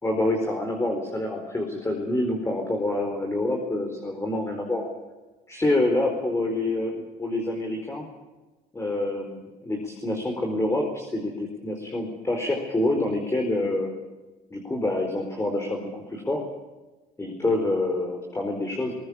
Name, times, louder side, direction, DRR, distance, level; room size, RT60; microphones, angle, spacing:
voice 1, 0.0-4.9 5.5-8.1 8.7-13.9 14.5-16.4 17.2-18.9, left 2 dB, 15° left, 2 dB, 4.5 m, -27 dB
22.0 x 19.5 x 8.6 m, 1.2 s
cardioid pair, 110°, 17 cm